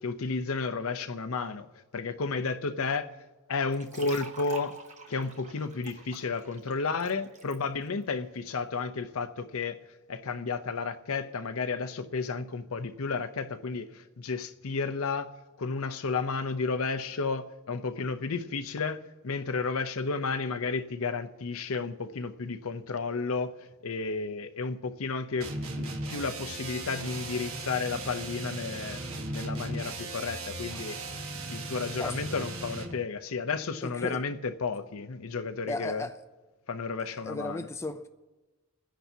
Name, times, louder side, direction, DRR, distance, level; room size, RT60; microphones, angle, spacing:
voice 1, 0.0-1.7 1.9-3.1 3.5-4.7 5.1-9.8 10.1-15.3 15.6-29.0 29.3-31.0 31.5-36.1 36.7-37.7, left 4 dB, 70° left, 0.6 m, -32 dB
sound 1, 3.7-7.6, right 4 dB, 30° right, 1.1 m, -45 dB
sound 2, 25.4-33.0, right 2 dB, 65° right, 1.3 m, -37 dB
voice 2, 32.0-32.5 33.8-34.2 35.7-36.2 37.2-38.1, left 2 dB, 10° left, 0.3 m, -36 dB
28.5 x 10.0 x 2.8 m
head